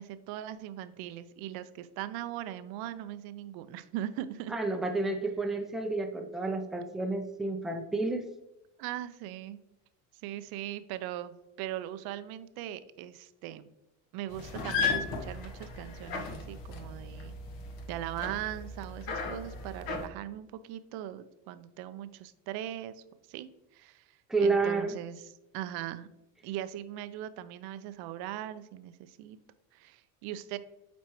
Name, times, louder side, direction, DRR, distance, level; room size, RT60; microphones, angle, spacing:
voice 1, 0.0-4.5 8.8-9.6 10.2-13.7 14.1-17.3 17.9-23.0 23.3-26.1 26.4-29.4 29.7-30.6, right 12 dB, 60° right, 13 dB, 0.6 m, -40 dB
voice 2, 4.5-8.2 24.3-24.9, right 3 dB, ahead, 4 dB, 0.6 m, -30 dB
sound 1, 14.3-20.1, left 4 dB, 60° left, 1.2 m, -36 dB
8.4 x 4.3 x 3.0 m, 0.91 s
supercardioid pair, 110°, 42 cm